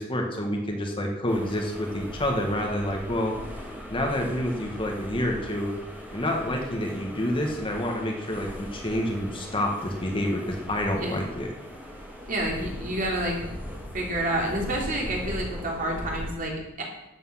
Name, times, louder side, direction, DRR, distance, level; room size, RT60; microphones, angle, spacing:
voice 1, 0.0-3.3 3.9-5.7 6.1-11.5, left 1 dB, 25° left, 1 dB, 1.6 m, -28 dB
sound 1, 1.3-16.3, equal, 10° right, 2.3 m, -39 dB
voice 2, 12.3-13.4 13.9-16.8, right 1 dB, 40° right, -1 dB, 3.1 m, -29 dB
12.5 x 8.7 x 5.8 m, 0.96 s
head